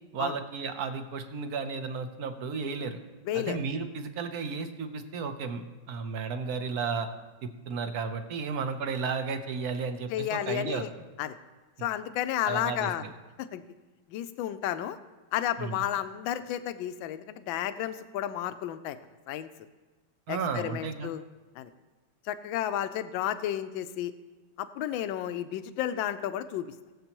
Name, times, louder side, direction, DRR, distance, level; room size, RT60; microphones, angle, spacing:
voice 1, 0.1-3.0 3.3-7.1 7.4-10.9 12.5-13.1 15.6-15.8 20.3-21.1, right 5 dB, 60° right, 7 dB, 1.2 m, -33 dB
voice 2, 3.3-3.6 10.1-10.9 11.2-11.4 11.8-13.0 13.4-13.6 14.1-15.0 15.3-19.0 19.3-19.5 20.3-21.2 21.6-21.7 22.2-24.1 24.6-26.7, left 11 dB, 85° left, 11 dB, 1.3 m, -32 dB
20.5 x 7.5 x 3.0 m, 1.2 s
omnidirectional pair, 2.1 m